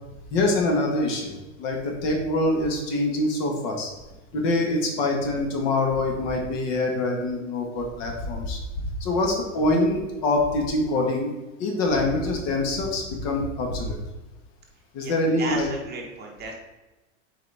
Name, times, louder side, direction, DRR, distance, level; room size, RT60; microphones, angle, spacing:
voice 1, 0.3-1.3 1.6-3.9 4.3-8.6 9.0-11.3 11.6-14.0 14.9-15.7, left 2 dB, 45° left, 1 dB, 1.8 m, -24 dB
voice 2, 15.0-16.5, right 3 dB, 25° right, 0 dB, 1.4 m, -35 dB
7.9 x 4.8 x 3.6 m, 1.1 s
supercardioid pair, 135°, 39 cm